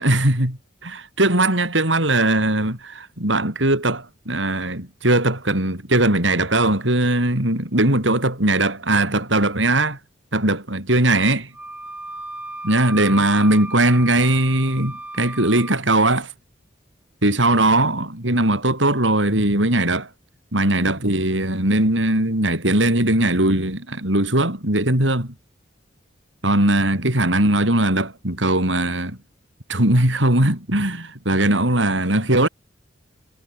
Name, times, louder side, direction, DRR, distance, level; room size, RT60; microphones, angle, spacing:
voice 1, 0.0-10.0 10.3-11.5 12.6-16.3 17.2-20.1 20.5-25.3 26.4-29.2 29.7-32.5, right 1 dB, 85° right, 7.2 m, -19 dB
Wind instrument woodwind instrument, 11.5-15.8, right 2 dB, 5° right, 4.8 m, -35 dB
head